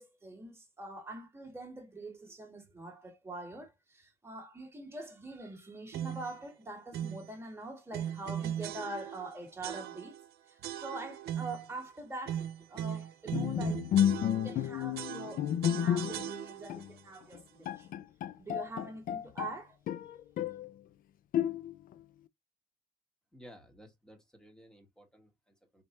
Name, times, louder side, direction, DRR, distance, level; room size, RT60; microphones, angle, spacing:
voice 1, 0.0-10.2 10.5-13.9 14.3-17.9 18.4-19.8, right 2 dB, 15° right, 1.8 m, -44 dB
sound 1, 5.9-6.4 6.9-7.3 7.9-9.3 9.6-10.2 10.6-11.7 12.2-14.6 14.9-16.8, right 10 dB, 70° right, 0.7 m, -39 dB
Bowed string instrument, 13.3-16.4 16.7-16.9 17.3-17.4 17.7-19.6 19.9-20.7 21.3-21.9, left 10 dB, 55° left, 0.5 m, -31 dB
voice 2, 23.3-25.8, equal, 5° left, 1.8 m, -56 dB
4.3 x 3.2 x 3.1 m
cardioid pair, 110°, 17 cm